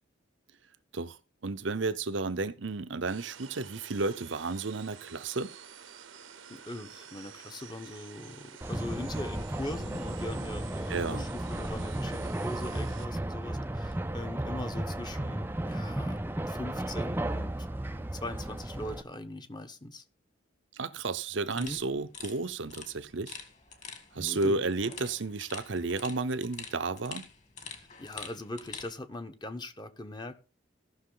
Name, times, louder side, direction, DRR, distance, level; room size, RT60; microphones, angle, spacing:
voice 1, 1.4-5.5 10.9-11.3 20.7-23.4 24.1-27.3, right 3 dB, 75° right, 0.8 m, -32 dB
sound 1, 3.1-13.1, right 8 dB, 90° right, 1.2 m, -50 dB
voice 2, 6.5-17.7 18.1-20.0 21.6-21.8 24.2-24.6 28.0-30.3, left 1 dB, 20° left, 1.0 m, -41 dB
sound 2, 8.6-19.0, right 1 dB, 10° right, 0.4 m, -34 dB
sound 3, 21.5-28.9, left 6 dB, 35° left, 2.0 m, -46 dB
16.5 x 6.3 x 3.9 m
head